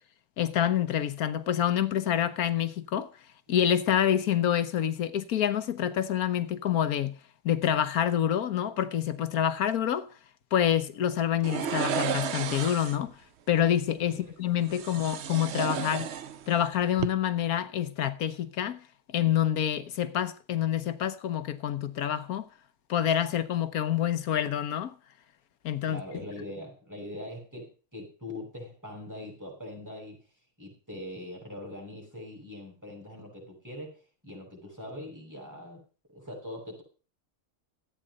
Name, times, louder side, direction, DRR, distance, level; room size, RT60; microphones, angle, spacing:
voice 1, 0.4-3.1 3.5-7.1 7.4-10.1 10.5-13.2 13.5-16.1 16.5-22.5 22.9-24.9 25.6-26.0, left 10 dB, 90° left, 1.4 m, -27 dB
sound 1, 11.4-13.1 14.7-16.6 16.9-17.1, right 8 dB, 55° right, 0.9 m, -32 dB
voice 2, 25.9-30.2 30.6-35.8 36.1-36.8, left 1 dB, 10° right, 6.6 m, -42 dB
14.0 x 8.8 x 5.3 m
omnidirectional pair, 1.5 m